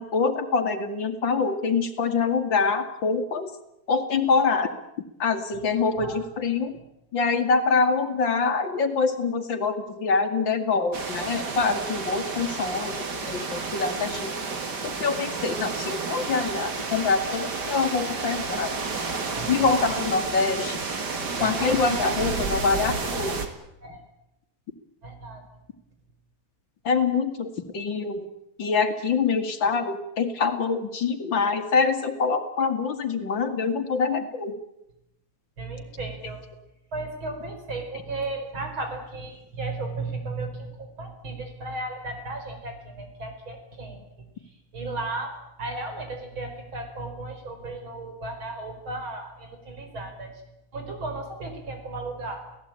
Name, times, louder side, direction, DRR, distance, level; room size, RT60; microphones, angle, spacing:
voice 1, 0.0-3.5 3.9-4.7 5.2-6.7 7.1-13.0 13.2-14.3 14.8-18.7 19.5-20.8 21.4-23.4 26.8-28.3 28.6-34.6, left 4 dB, 65° left, 8 dB, 2.7 m, -25 dB
sound 1, 10.9-23.5, right 4 dB, 55° right, 2.9 m, -31 dB
voice 2, 19.4-19.9 21.4-21.8 23.8-24.0 25.0-25.4 35.6-36.4 36.9-44.0 44.4-50.4 50.7-52.4, right 2 dB, 75° right, 5 dB, 5.6 m, -35 dB
29.5 x 17.0 x 8.8 m, 0.85 s
omnidirectional pair, 2.2 m